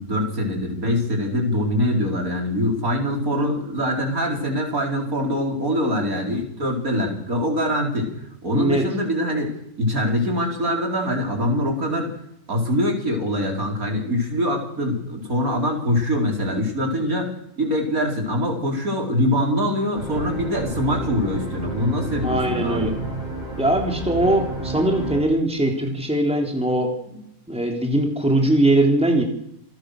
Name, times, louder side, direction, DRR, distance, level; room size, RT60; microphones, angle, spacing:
voice 1, 0.0-8.1 8.4-12.1 12.5-22.9, left 1 dB, 75° right, 1 dB, 5.1 m, -23 dB
voice 2, 8.5-8.8 22.2-22.9 23.6-29.2, right 1 dB, 5° right, 2 dB, 3.6 m, -21 dB
sound 1, 19.9-25.2, right 2 dB, 30° right, 7.9 m, -31 dB
28.5 x 18.0 x 6.7 m, 0.76 s
omnidirectional pair, 1.5 m